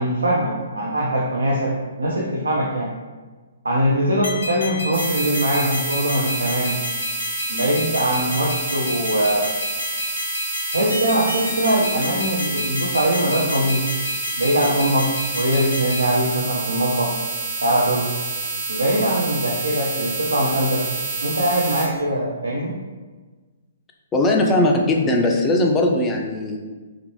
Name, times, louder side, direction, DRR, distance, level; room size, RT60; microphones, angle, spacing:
voice 1, 0.0-1.7 2.0-2.9 3.6-6.8 7.5-9.5 10.7-13.8 14.4-17.1 17.6-18.1 18.7-20.8 21.2-22.7, right 1 dB, 75° right, -3 dB, 0.5 m, -22 dB
sound 1, 4.2-16.1, left 2 dB, 75° left, 0.7 m, -31 dB
sound 2, 4.9-21.9, right 3 dB, 50° right, 1.0 m, -28 dB
voice 2, 24.1-26.6, left 2 dB, 15° left, 1 dB, 0.4 m, -19 dB
3.1 x 2.5 x 3.1 m, 1.3 s
figure-of-eight pair, 125°, 0 cm